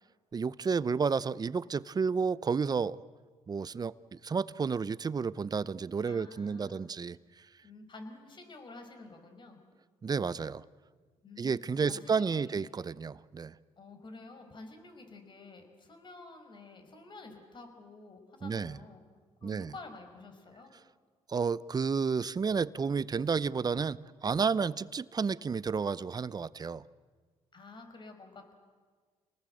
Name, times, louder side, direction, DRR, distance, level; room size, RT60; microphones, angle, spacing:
voice 1, 0.3-3.0 3.5-7.5 10.0-10.6 11.4-13.6 18.4-18.8 19.4-19.7 21.3-26.8, right 5 dB, 35° right, 0.7 m, -31 dB
voice 2, 6.0-6.9 7.6-9.6 11.2-12.7 13.8-19.1 19.4-20.7 27.5-28.6, left 3 dB, 40° left, 5.3 m, -50 dB
29.0 x 19.5 x 7.9 m
supercardioid pair, 75°, 12 cm